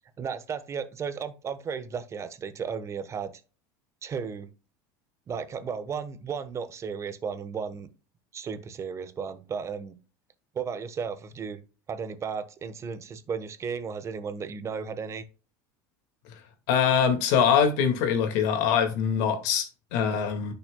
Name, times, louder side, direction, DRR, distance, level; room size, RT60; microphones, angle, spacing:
voice 1, 0.2-3.3 4.0-4.5 5.3-7.9 8.3-10.0 10.5-11.6 11.9-15.2, right 6 dB, 30° right, 1.2 m, -34 dB
voice 2, 16.7-20.5, left 7 dB, 75° left, 2.1 m, -23 dB
10.5 x 5.8 x 2.3 m
supercardioid pair, 115°, 9 cm